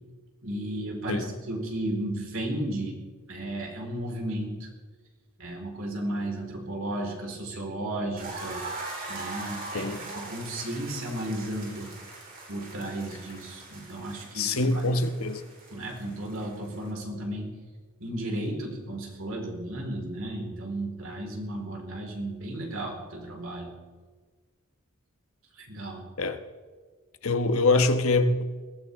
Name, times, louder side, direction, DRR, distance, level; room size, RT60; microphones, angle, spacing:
voice 1, 0.4-2.9 3.3-4.7 5.4-8.8 9.1-11.9 12.5-15.0 15.7-17.5 18.0-23.7 25.6-26.0, right 1 dB, 70° right, 4.6 m, -34 dB
sound 1, 8.2-16.9, right 2 dB, 40° right, 4.3 m, -41 dB
voice 2, 14.3-15.4 26.2-26.4 27.2-28.4, left 2 dB, 80° left, 1.3 m, -24 dB
22.0 x 15.5 x 3.7 m
head